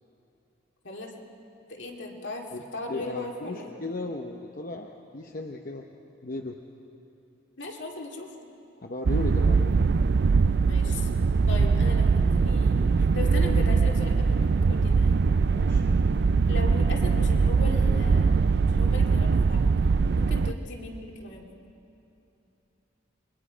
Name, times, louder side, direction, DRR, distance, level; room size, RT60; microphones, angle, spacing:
voice 1, 1.7-2.5 2.7-3.7 7.6-8.5 10.6-11.2 11.5-15.2 16.5-19.7 20.2-21.4, left 2 dB, 70° left, 1 dB, 2.3 m, -38 dB
voice 2, 2.9-5.9 6.2-6.6 8.8-9.8 15.5-15.9 20.5-20.6, left 2 dB, 45° left, 2 dB, 0.8 m, -36 dB
sound 1, 9.0-20.5, right 4 dB, 55° right, 0.4 m, -22 dB
28.0 x 21.5 x 5.1 m, 2.9 s
head